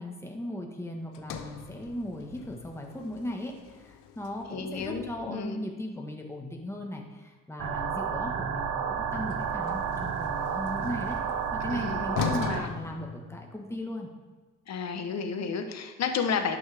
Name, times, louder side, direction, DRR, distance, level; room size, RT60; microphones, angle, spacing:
voice 1, 0.0-11.2 11.5-14.1, left 1 dB, 10° left, 1 dB, 1.5 m, -37 dB
Sliding door, 1.1-5.4 8.9-13.8, left 7 dB, 85° left, 0.7 m, -40 dB
voice 2, 4.5-5.7 11.7-12.7 14.7-16.6, left 6 dB, 60° left, 6 dB, 1.1 m, -32 dB
sound 1, 7.6-12.6, right 7 dB, 90° right, 0.8 m, -31 dB
11.5 x 6.3 x 3.5 m, 1.3 s
cardioid pair, 90°, 30 cm